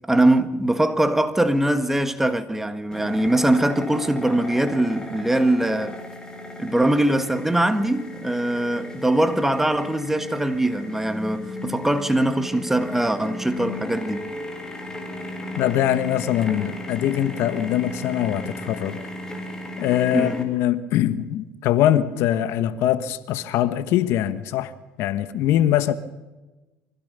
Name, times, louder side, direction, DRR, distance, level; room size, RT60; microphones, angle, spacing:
voice 1, 0.1-6.0 6.6-14.2 20.1-20.4, right 1 dB, 5° right, 1.7 m, -22 dB
sound 1, 2.9-20.4, left 1 dB, 15° left, 4.3 m, -35 dB
voice 2, 15.6-19.0 19.8-24.7 25.0-25.9, left 12 dB, 70° left, 1.3 m, -22 dB
25.0 x 16.0 x 6.9 m
supercardioid pair, 100°, 5 cm